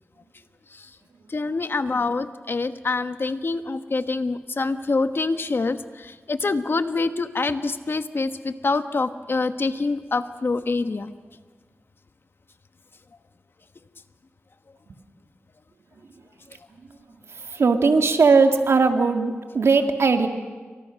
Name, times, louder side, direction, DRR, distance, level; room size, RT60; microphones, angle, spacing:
voice 1, 1.3-11.1, left 3 dB, 55° left, 9 dB, 1.3 m, -26 dB
voice 2, 17.3-20.3, right 4 dB, 75° right, 5 dB, 2.1 m, -19 dB
28.5 x 24.0 x 6.4 m, 1.4 s
wide cardioid pair, 65°, 5 cm